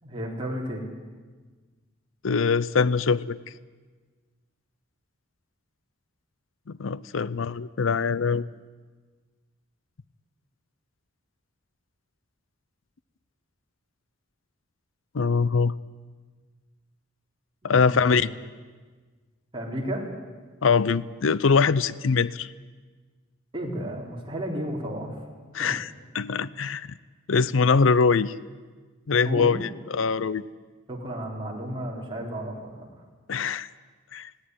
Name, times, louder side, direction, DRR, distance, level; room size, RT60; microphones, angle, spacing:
voice 1, 0.0-0.9 17.7-18.2 19.5-20.0 23.5-25.2 25.6-25.7 29.2-29.6 30.9-32.8, right 1 dB, 25° right, -1 dB, 3.8 m, -33 dB
voice 2, 2.2-3.4 6.7-8.5 15.1-15.7 17.6-18.3 20.6-22.5 25.5-26.9 27.3-28.3 29.1-30.4 33.3-33.7 34.1-34.3, left 5 dB, 80° left, 19 dB, 0.6 m, -23 dB
19.0 x 17.5 x 9.6 m, 1.4 s
head